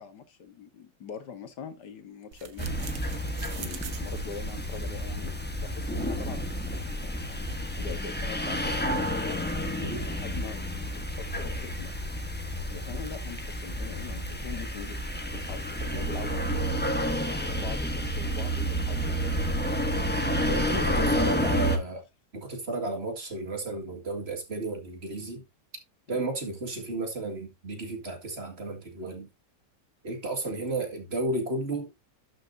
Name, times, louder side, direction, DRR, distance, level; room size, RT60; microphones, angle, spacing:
voice 1, 0.0-3.1 3.5-7.5 7.8-11.9 12.7-19.5 20.7-21.8 26.1-26.2 30.4-30.6, left 6 dB, 65° left, 1.9 m, -43 dB
sound 1, 2.3-7.8, right 8 dB, 75° right, 1.6 m, -47 dB
sound 2, 2.6-21.8, equal, 5° left, 0.9 m, -30 dB
voice 2, 20.4-22.0 22.3-25.4 26.1-29.3 30.0-31.9, right 2 dB, 35° right, 2.2 m, -33 dB
11.5 x 6.4 x 2.7 m
omnidirectional pair, 1.9 m